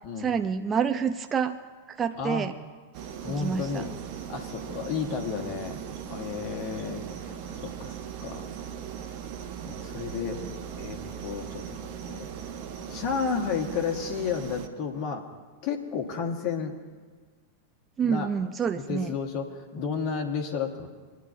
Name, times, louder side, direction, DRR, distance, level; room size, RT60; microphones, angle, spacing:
voice 1, 0.2-1.6 1.9-2.5 3.3-3.9 18.0-19.1, right 6 dB, 20° right, 8 dB, 0.5 m, -28 dB
voice 2, 2.2-2.5 3.2-3.9 4.3-5.8 6.1-8.5 9.6-10.4 10.8-12.3 12.9-15.2 15.6-16.8 18.0-18.3 18.9-20.9, left 6 dB, 40° left, 3 dB, 1.5 m, -32 dB
sound 1, 2.9-14.7, right 8 dB, 45° right, 1.0 m, -39 dB
24.5 x 10.5 x 2.7 m, 1.5 s
figure-of-eight pair, 90°, 0 cm